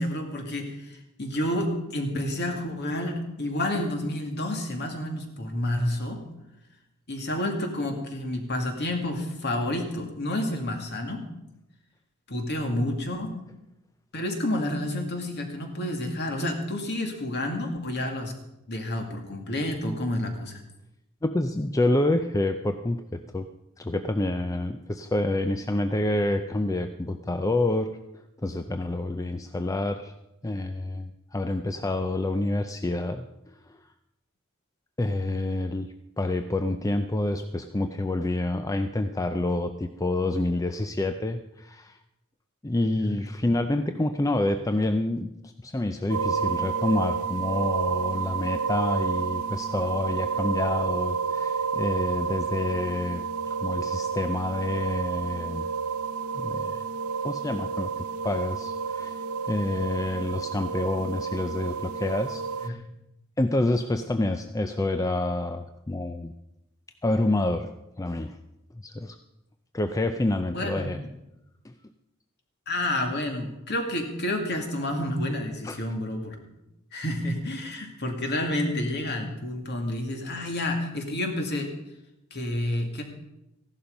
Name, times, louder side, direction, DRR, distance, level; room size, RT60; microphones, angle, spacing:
voice 1, 0.0-6.2 7.1-11.3 12.3-13.3 14.1-18.4 18.7-20.6 42.9-43.2 62.6-62.8 70.5-70.9 72.7-76.4 76.9-81.7 82.3-83.0, left 1 dB, 50° left, 3 dB, 2.3 m, -29 dB
voice 2, 21.2-23.5 23.8-30.1 30.4-33.8 35.0-42.0 42.6-45.3 45.6-55.7 56.3-56.8 57.2-62.8 63.4-66.3 67.0-67.7 68.0-68.4 68.8-69.2 69.7-71.0 71.6-71.7 75.6-75.8, left 2 dB, 15° left, 8 dB, 0.5 m, -28 dB
sound 1, 46.1-62.7, right 5 dB, 85° right, 0.7 m, -30 dB
15.0 x 11.5 x 5.2 m, 0.89 s
head